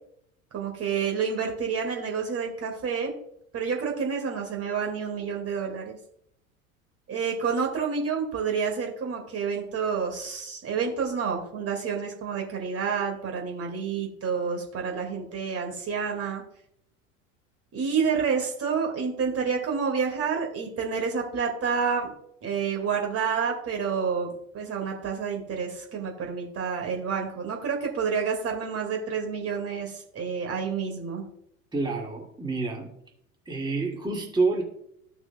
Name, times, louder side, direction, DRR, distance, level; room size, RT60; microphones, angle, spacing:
voice 1, 0.5-3.1 3.5-6.0 7.1-16.4 17.7-22.1 22.4-31.2, right 6 dB, 35° right, 2 dB, 2.1 m, -29 dB
voice 2, 31.7-32.9 33.5-34.6, right 3 dB, 10° right, -1 dB, 2.0 m, -28 dB
14.5 x 6.0 x 2.2 m, 0.71 s
figure-of-eight pair, 75°, 42 cm